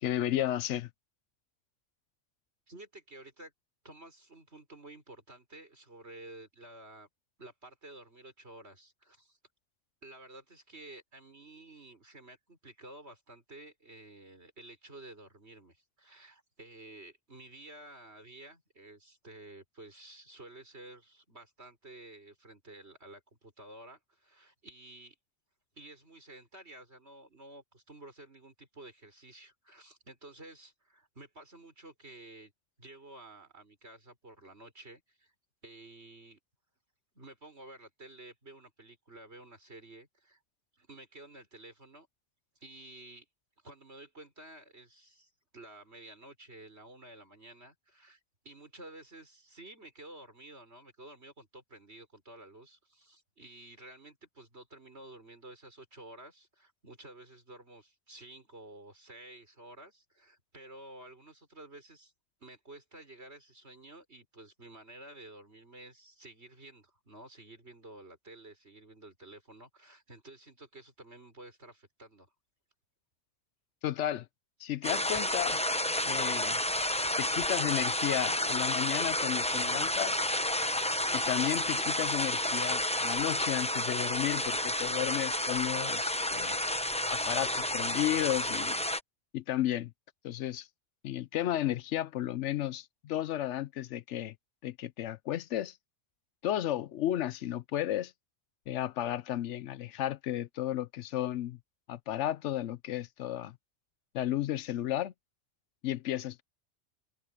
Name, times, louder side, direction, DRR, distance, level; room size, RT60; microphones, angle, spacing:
voice 1, 0.0-0.9 73.8-74.3 74.6-75.6 76.0-76.6 77.2-80.2 81.1-86.6 87.1-88.8 89.3-89.9 90.2-90.7 91.0-94.3 94.6-95.8 96.4-98.1 98.7-101.6 101.9-103.6 104.1-105.1 105.8-106.4, left 12 dB, 75° left, 0.9 m, -33 dB
voice 2, 2.7-3.5 3.8-7.1 7.4-9.4 10.0-25.2 25.7-32.5 32.8-35.3 35.6-36.4 37.1-40.4 40.8-42.1 42.6-43.3 43.6-62.1 62.4-72.3 79.4-80.2 84.3-84.5 84.8-84.9, right 2 dB, 60° right, 6.3 m, -52 dB
sound 1, 74.8-89.0, left 1 dB, 5° left, 0.6 m, -30 dB
open air
omnidirectional pair, 1.2 m